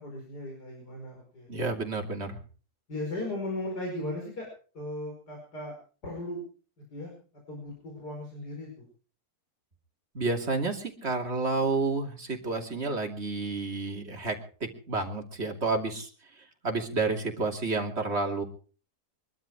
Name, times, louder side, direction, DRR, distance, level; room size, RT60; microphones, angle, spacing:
voice 1, 0.0-1.5 2.9-4.5 4.7-5.7 6.0-6.4 6.9-7.1 7.5-8.7, left 1 dB, 80° left, 0 dB, 5.7 m, -36 dB
voice 2, 1.5-2.4 10.1-16.1 16.6-18.4, right 3 dB, 40° right, 2 dB, 3.0 m, -30 dB
24.0 x 12.5 x 4.8 m, 0.40 s
omnidirectional pair, 1.7 m